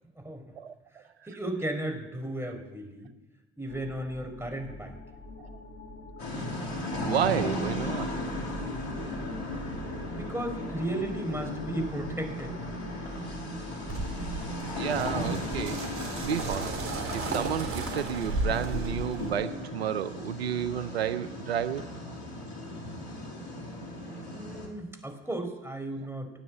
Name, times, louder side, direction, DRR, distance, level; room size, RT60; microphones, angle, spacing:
voice 1, 0.2-0.5 1.3-3.1 3.6-5.0 10.0-12.8 24.3-26.3, right 1 dB, 10° right, 4 dB, 4.4 m, -35 dB
sound 1, 3.7-18.3, left 1 dB, 40° left, 2.1 m, -45 dB
sound 2, 6.2-24.7, left 1 dB, 85° left, 2.6 m, -36 dB
voice 2, 7.0-8.1 14.7-15.8 16.2-16.9 17.1-21.9, right 9 dB, 90° right, 14 dB, 0.5 m, -31 dB
sound 3, 13.9-19.3, right 3 dB, 45° right, 3.6 m, -34 dB
17.0 x 9.5 x 8.4 m, 1.0 s
hypercardioid pair, 55°, 31 cm